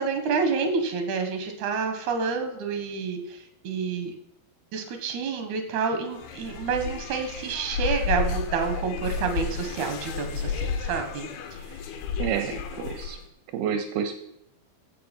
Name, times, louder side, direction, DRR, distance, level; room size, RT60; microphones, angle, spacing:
voice 1, 0.0-3.4 3.6-4.1 4.7-11.3 11.7-11.8, right 5 dB, 60° right, 6 dB, 2.9 m, -28 dB
sound 1, 6.1-13.2, left 5 dB, 80° left, 3.1 m, -32 dB
voice 2, 12.2-13.2 13.5-14.2, right 8 dB, 80° right, 8 dB, 2.7 m, -29 dB
15.0 x 6.4 x 5.4 m, 0.81 s
omnidirectional pair, 4.5 m